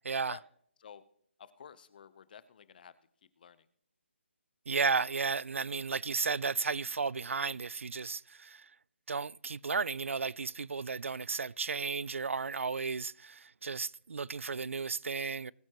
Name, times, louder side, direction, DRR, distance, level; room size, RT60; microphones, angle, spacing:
voice 1, 0.0-0.4 4.7-8.6 9.1-15.5, right 5 dB, 85° right, 0.4 m, -34 dB
voice 2, 1.4-2.9 3.4-3.6, left 8 dB, 45° left, 0.9 m, -52 dB
21.0 x 8.9 x 3.1 m
hypercardioid pair, 155°, 7 cm